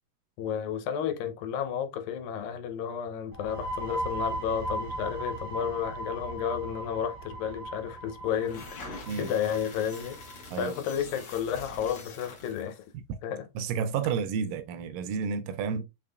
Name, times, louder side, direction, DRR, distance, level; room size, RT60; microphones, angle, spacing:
voice 1, 0.4-10.2 10.6-12.9 13.2-13.5 15.7-15.8, left 8 dB, 85° left, 2.5 m, -32 dB
sound 1, 3.3-10.8, right 1 dB, 50° right, 1.0 m, -37 dB
sound 2, 8.3-12.8, left 3 dB, 55° left, 1.4 m, -45 dB
voice 2, 13.6-15.8, right 6 dB, 80° right, 2.1 m, -31 dB
5.6 x 3.6 x 2.3 m
omnidirectional pair, 4.0 m